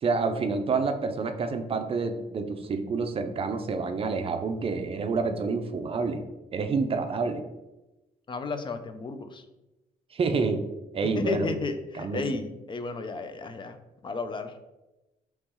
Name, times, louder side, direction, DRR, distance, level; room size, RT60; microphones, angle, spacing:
voice 1, 0.0-6.2 6.5-7.4 10.1-10.6 10.9-11.6 12.0-12.2, right 4 dB, 35° right, 7 dB, 0.5 m, -28 dB
voice 2, 8.3-9.4 11.1-13.8 14.0-14.5, left 4 dB, 30° left, 8 dB, 0.4 m, -33 dB
3.0 x 2.8 x 3.7 m, 1.0 s
supercardioid pair, 70°, 16 cm